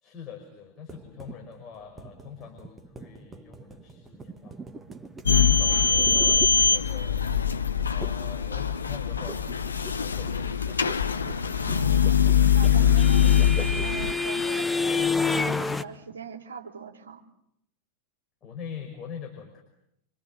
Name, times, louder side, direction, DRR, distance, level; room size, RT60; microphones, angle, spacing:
voice 1, 0.0-4.6 5.4-7.2 7.8-10.8 18.4-19.6, left 7 dB, 30° left, 2 dB, 5.2 m, -43 dB
sound 1, 0.9-7.2 8.0-8.4 8.6-14.3, right 3 dB, 15° right, 1.6 m, -43 dB
sound 2, 5.3-14.1, left 7 dB, 75° left, 1.1 m, -22 dB
voice 2, 5.6-6.1 11.7-12.2 12.5-13.4 13.8-14.7 15.3-17.2, right 6 dB, 70° right, 4 dB, 3.1 m, -41 dB
sound 3, 12.0-15.8, left 4 dB, 10° left, 1.3 m, -28 dB
27.5 x 26.0 x 7.4 m, 0.75 s
figure-of-eight pair, 90°, 0 cm